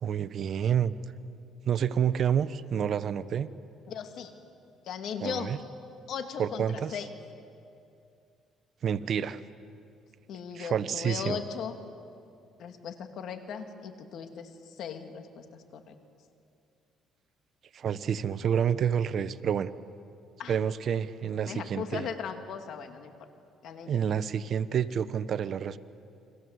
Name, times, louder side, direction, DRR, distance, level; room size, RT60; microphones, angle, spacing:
voice 1, 0.0-0.9 1.6-3.5 5.2-5.6 6.4-7.0 8.8-9.4 10.5-11.4 17.7-19.7 20.5-22.1 23.9-25.8, right 8 dB, 55° right, 14 dB, 1.0 m, -28 dB
voice 2, 3.9-4.3 4.8-5.5 6.1-7.1 10.3-11.8 12.6-14.5 14.8-16.0 20.4-20.6 21.4-23.1 23.6-23.9, left 7 dB, 65° left, 6 dB, 2.6 m, -37 dB
29.5 x 23.5 x 8.0 m, 2.5 s
cardioid pair, 95°, 0 cm